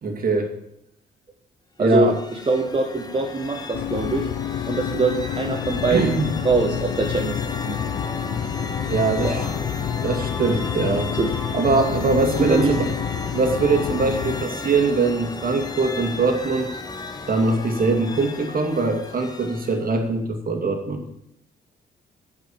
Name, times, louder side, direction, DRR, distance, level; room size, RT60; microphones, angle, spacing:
voice 1, 0.0-0.5 1.8-2.1 5.9-6.2 8.9-9.4 10.0-11.1 11.5-12.8 13.3-16.8 17.3-21.0, right 3 dB, 45° right, 4 dB, 2.6 m, -22 dB
sound 1, 1.8-20.0, left 3 dB, 20° left, 1.5 m, -34 dB
voice 2, 1.8-2.1 2.5-4.3 4.7-7.4 7.7-7.8 9.2-9.6 11.2-11.3 12.4-12.7, right 3 dB, 25° right, 2 dB, 1.5 m, -23 dB
sound 2, 3.7-14.5, left 11 dB, 60° left, 0.5 m, -29 dB
11.5 x 6.2 x 8.6 m, 0.79 s
cardioid pair, 90°, 20 cm